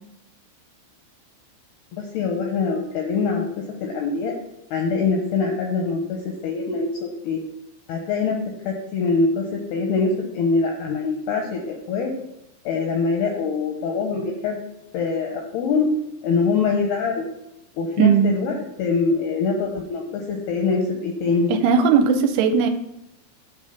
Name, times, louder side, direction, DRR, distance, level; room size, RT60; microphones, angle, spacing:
voice 1, 1.9-3.5 3.8-4.3 4.7-6.0 6.4-7.4 7.9-8.4 8.6-12.1 12.7-14.6 14.9-15.9 16.2-17.3 17.8-21.5, left 4 dB, 75° left, 0 dB, 2.4 m, -24 dB
voice 2, 18.0-18.4 21.5-22.7, right 6 dB, 85° right, 6 dB, 3.1 m, -18 dB
9.0 x 3.6 x 6.9 m, 0.85 s
omnidirectional pair, 5.7 m